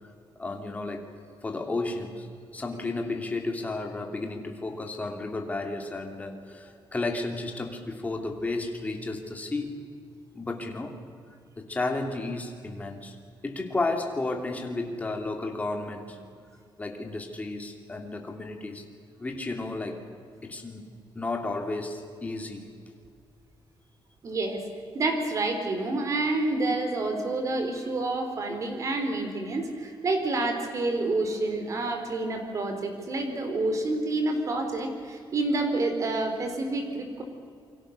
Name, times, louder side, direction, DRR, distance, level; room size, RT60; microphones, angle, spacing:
voice 1, 0.4-1.0 1.4-2.3 2.5-9.8 10.3-11.0 11.6-13.2 13.4-16.2 16.8-18.8 19.2-20.0 20.4-20.9 21.1-22.7 25.9-26.0 28.5-28.6, left 2 dB, 20° left, 3 dB, 2.9 m, -33 dB
voice 2, 24.2-24.6 24.9-37.2, right 2 dB, 40° right, 6 dB, 4.0 m, -28 dB
28.0 x 24.0 x 6.6 m, 2.3 s
wide cardioid pair, 170°, 8 cm